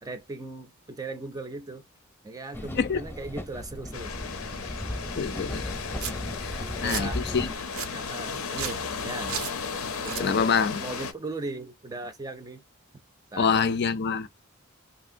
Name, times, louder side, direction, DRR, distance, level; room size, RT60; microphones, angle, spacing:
voice 1, 0.0-1.8 2.2-4.3 5.2-5.7 6.6-7.2 7.9-9.4 10.0-10.5 10.8-12.6 13.3-13.8, right 3 dB, 20° right, 0.4 m, -38 dB
sound 1, 2.5-7.5, left 1 dB, 10° left, 0.7 m, -36 dB
sound 2, 3.9-11.1, left 5 dB, 90° left, 0.7 m, -35 dB
voice 2, 5.2-5.8 6.1-7.5 7.9-8.0 10.2-10.8 13.4-14.3, left 6 dB, 55° left, 0.5 m, -26 dB
Domestic sounds home sounds, 5.6-5.7 6.0-6.1 6.6-7.0 7.5-7.9 8.5-8.8 9.3-9.5 9.9-10.2, right 8 dB, 85° right, 0.6 m, -34 dB
2.8 x 2.6 x 2.5 m
head